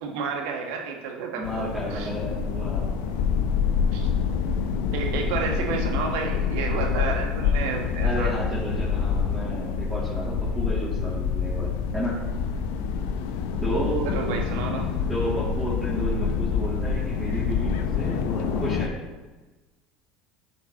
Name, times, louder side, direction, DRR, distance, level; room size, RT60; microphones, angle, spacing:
voice 1, 0.0-2.1 3.9-4.1 4.9-8.3 14.0-14.9, right 5 dB, 75° right, 2 dB, 1.2 m, -31 dB
sound 1, 1.4-18.9, left 6 dB, 80° left, 0.6 m, -26 dB
voice 2, 1.4-3.0 8.0-12.2 13.6-14.2 15.1-18.9, right 1 dB, 5° right, -9 dB, 2.3 m, -32 dB
10.5 x 5.2 x 2.9 m, 1.2 s
supercardioid pair, 95°, 0 cm